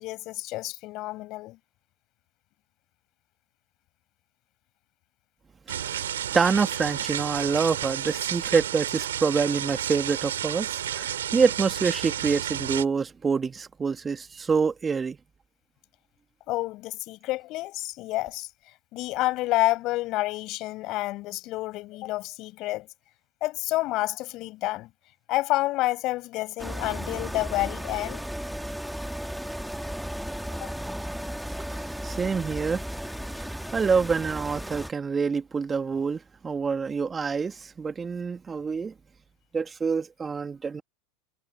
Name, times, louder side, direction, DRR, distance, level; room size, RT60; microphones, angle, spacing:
voice 1, 0.0-1.6 16.5-18.5 18.9-22.9 23.4-24.9 25.3-28.2 30.6-30.7, left 18 dB, 55° left, 6.3 m, -29 dB
voice 2, 5.7-6.0 6.3-15.2 31.6-32.8 33.4-38.9 39.5-40.8, right 5 dB, 20° right, 1.9 m, -26 dB
sound 1, 5.7-12.9, right 10 dB, 85° right, 3.2 m, -31 dB
sound 2, 26.6-34.9, equal, ahead, 2.0 m, -35 dB
hypercardioid pair, 90°, 0 cm